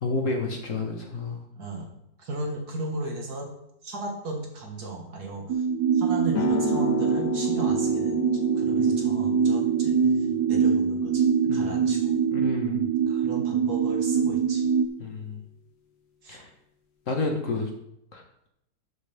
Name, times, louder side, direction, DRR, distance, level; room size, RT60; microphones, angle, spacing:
voice 1, 0.0-1.4 8.8-9.0 10.0-10.3 11.5-12.0 12.3-12.9 15.0-15.4 16.3-16.5 17.1-17.7 18.1-18.2, left 3 dB, 50° left, 2 dB, 1.7 m, -31 dB
voice 2, 1.6-1.9 2.2-3.5 3.8-5.7 5.9-12.2 13.1-14.7 16.2-16.4, right 2 dB, 65° right, 1 dB, 2.3 m, -36 dB
sound 1, 5.5-14.9, right 7 dB, 85° right, 1.2 m, -24 dB
sound 2, 6.3-13.5, left 7 dB, 75° left, 1.9 m, -34 dB
12.5 x 6.6 x 3.5 m, 0.78 s
omnidirectional pair, 1.8 m